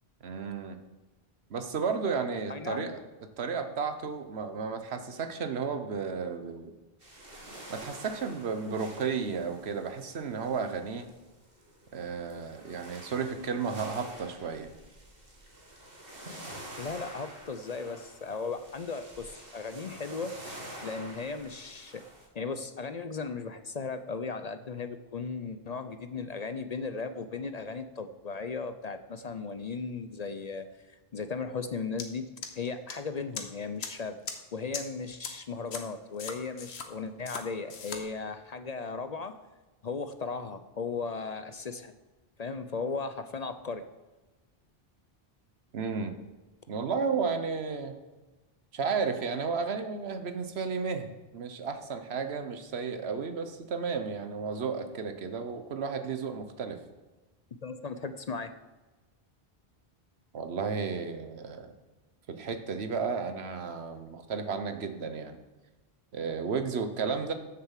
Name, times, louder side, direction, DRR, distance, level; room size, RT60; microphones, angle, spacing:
voice 1, 0.2-0.8 1.5-3.0 3.4-6.7 7.7-11.0 11.9-14.7 45.7-46.1 46.7-48.0 48.7-56.8 60.3-61.7 62.3-65.4 66.1-67.3, right 5 dB, 80° right, 8 dB, 1.2 m, -33 dB
voice 2, 2.5-2.9 16.8-20.3 20.8-22.0 22.3-32.3 32.5-34.2 34.5-39.3 39.8-41.9 42.4-43.8 57.6-58.5, left 4 dB, 50° left, 10 dB, 0.6 m, -36 dB
sound 1, 7.0-22.3, right 1 dB, 65° right, 2.4 m, -48 dB
sound 2, 32.0-32.1 32.4-32.9 33.4-33.5 33.8-33.9 34.3-34.4 34.7-34.8 35.2-35.3 35.7-35.8 36.2-36.9 37.3-37.4 37.7-38.0, left 5 dB, 90° left, 1.3 m, -37 dB
7.5 x 7.0 x 7.4 m, 1.2 s
omnidirectional pair, 1.0 m